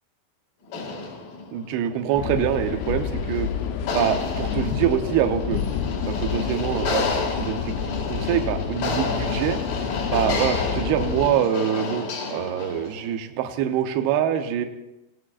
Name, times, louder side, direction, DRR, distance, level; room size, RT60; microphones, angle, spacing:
sound 1, 0.7-13.0, left 3 dB, 55° left, 3.4 m, -31 dB
voice 1, 1.5-3.5 3.9-5.6 6.1-7.1 7.4-7.7 8.1-9.6 10.1-12.1 12.3-14.7, right 10 dB, 80° right, 6 dB, 2.3 m, -24 dB
sound 2, 2.1-11.3, left 8 dB, 80° left, 2.8 m, -29 dB
17.5 x 17.0 x 2.5 m, 0.97 s
omnidirectional pair, 5.6 m